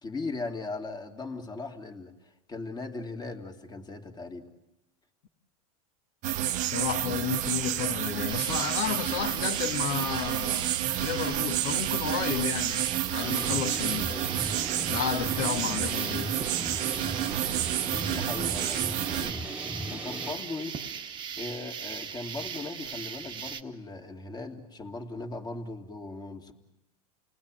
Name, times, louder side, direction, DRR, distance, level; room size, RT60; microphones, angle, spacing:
voice 1, 0.0-2.1 2.5-4.5 17.8-19.4 19.9-20.8 21.4-26.5, left 3 dB, 20° left, 2.5 m, -38 dB
sound 1, 6.2-19.3, right 13 dB, 40° right, 0.9 m, -30 dB
voice 2, 6.6-10.7 11.0-12.8 13.1-14.3 14.9-16.3 19.8-19.9, left 8 dB, 60° left, 1.8 m, -32 dB
sound 2, 8.3-23.6, right 7 dB, 25° right, 1.2 m, -39 dB
sound 3, 13.2-20.3, right 1 dB, 5° right, 1.6 m, -37 dB
30.0 x 19.5 x 9.0 m
hypercardioid pair, 120°, 19 cm